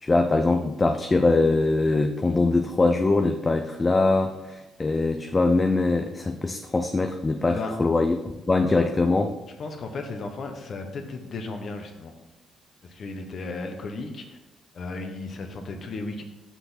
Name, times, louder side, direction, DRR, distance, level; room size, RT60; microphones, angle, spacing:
voice 1, 0.0-8.2 8.5-9.3, left 3 dB, 25° left, 5 dB, 0.5 m, -22 dB
voice 2, 9.6-12.1 12.8-14.4 14.7-16.2, left 3 dB, 55° left, 4 dB, 1.1 m, -35 dB
5.9 x 5.8 x 4.2 m, 1.0 s
cardioid pair, 90°, 0 cm